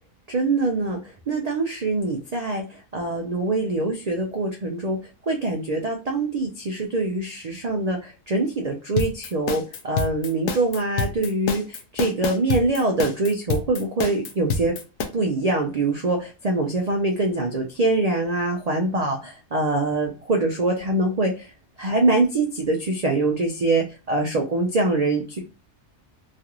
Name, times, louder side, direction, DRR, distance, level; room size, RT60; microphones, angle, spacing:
voice 1, 0.3-5.0 5.3-14.7 15.1-21.5 21.8-25.4, right 2 dB, 90° right, 2 dB, 0.3 m, -24 dB
sound 1, 9.0-15.1, left 4 dB, 85° left, 1.0 m, -27 dB
3.1 x 2.5 x 2.8 m, 0.31 s
omnidirectional pair, 1.4 m